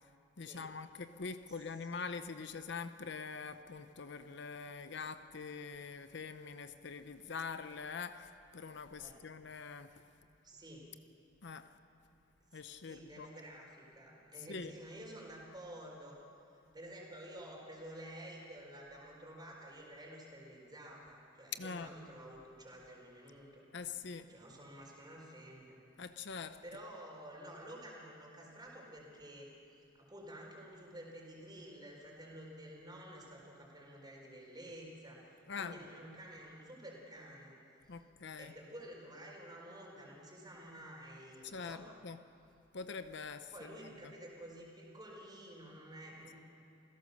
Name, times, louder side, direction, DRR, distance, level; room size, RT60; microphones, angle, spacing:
voice 1, 0.4-8.3 8.5-9.9 11.4-11.7 12.5-13.3 14.5-14.7 21.5-21.9 23.7-24.3 26.0-26.6 35.5-35.7 37.9-38.5 41.4-42.2 42.7-43.7, left 5 dB, 65° left, 10 dB, 0.7 m, -44 dB
voice 2, 1.5-2.0 9.0-9.2 10.4-10.8 12.5-16.2 16.5-23.6 24.3-25.8 26.6-29.5 30.0-35.2 35.6-37.5 38.4-42.0 43.5-46.3, right 1 dB, 25° right, -2 dB, 4.5 m, -51 dB
28.0 x 16.5 x 6.6 m, 2.8 s
head